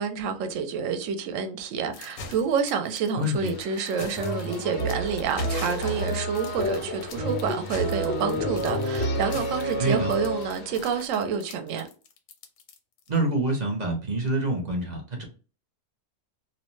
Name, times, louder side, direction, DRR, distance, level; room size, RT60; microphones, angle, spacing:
voice 1, 0.0-11.9, right 6 dB, 70° right, 0.9 m, -28 dB
sound 1, 1.9-13.2, left 4 dB, 85° left, 1.1 m, -43 dB
voice 2, 3.2-3.5 9.8-10.1 13.1-15.2, right 1 dB, 45° right, 0.6 m, -26 dB
sound 2, 3.4-11.1, left 4 dB, 65° left, 0.6 m, -44 dB
sound 3, 4.2-10.6, equal, 10° left, 0.7 m, -29 dB
2.7 x 2.1 x 3.0 m
omnidirectional pair, 1.5 m